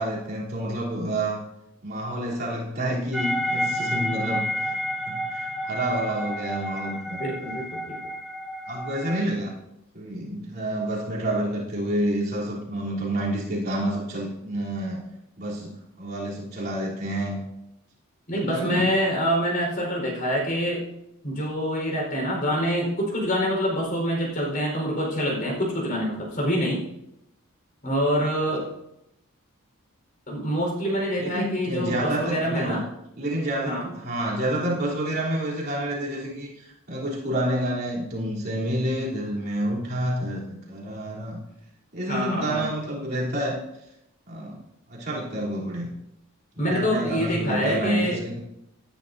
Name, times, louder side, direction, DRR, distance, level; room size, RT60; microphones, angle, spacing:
voice 1, 0.0-1.4 1.8-4.7 5.1-7.2 8.7-9.5 9.9-15.0 15.4-17.4 18.3-18.9 31.2-32.8 33.2-41.4 41.9-43.6 44.3-44.6 44.9-45.9 46.6-48.4, right 1 dB, 45° right, -7 dB, 3.4 m, -29 dB
sound 1, 3.1-9.2, equal, ahead, 1.1 m, -30 dB
voice 2, 7.2-8.0 18.3-20.9 21.2-26.8 27.8-28.7 30.3-32.8 33.6-33.9 42.1-42.7 46.6-48.2, equal, 40° left, -1 dB, 4.6 m, -26 dB
18.5 x 10.5 x 2.7 m, 0.83 s
head